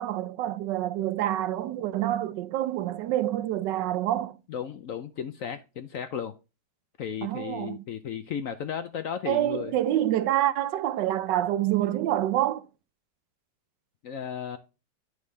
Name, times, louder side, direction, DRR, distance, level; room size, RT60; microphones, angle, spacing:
voice 1, 0.0-4.4 7.2-7.8 9.3-12.6, right 13 dB, 80° right, 1.2 m, -27 dB
voice 2, 4.5-6.3 7.0-9.7 14.0-14.6, left 8 dB, 65° left, 0.8 m, -34 dB
9.6 x 5.4 x 3.2 m
omnidirectional pair, 1.9 m